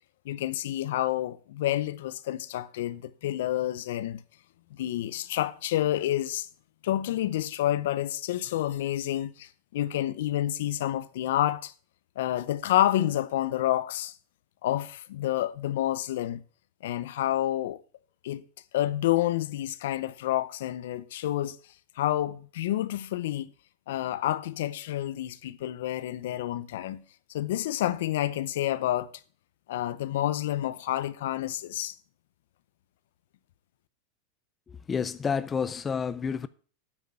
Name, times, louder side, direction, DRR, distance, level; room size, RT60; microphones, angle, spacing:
voice 1, 0.2-4.2 4.7-6.5 6.8-11.7 12.2-14.1 14.6-16.4 16.8-17.8 18.2-18.4 18.7-21.6 22.0-23.5 23.9-27.0 27.3-29.1 29.7-32.0, left 13 dB, 75° left, 0.7 m, -29 dB
voice 2, 34.9-36.5, left 6 dB, 15° left, 0.4 m, -29 dB
9.0 x 6.1 x 7.6 m
supercardioid pair, 165°, 0 cm